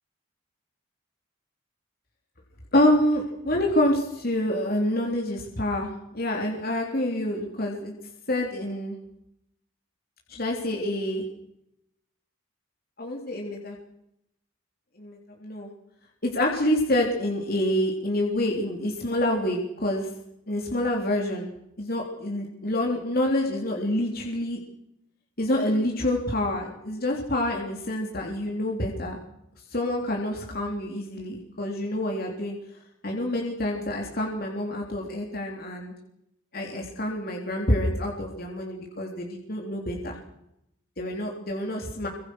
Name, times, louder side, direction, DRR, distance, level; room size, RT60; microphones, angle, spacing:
voice 1, 2.7-7.9 8.3-9.0 10.3-11.2 13.0-13.8 15.0-15.7 16.2-20.1 20.5-21.5 21.8-24.6 25.4-29.2 29.7-32.6 33.0-35.9 36.5-40.2 41.0-42.1, left 1 dB, 45° left, 0 dB, 3.6 m, -27 dB
26.0 x 25.0 x 6.4 m, 0.82 s
head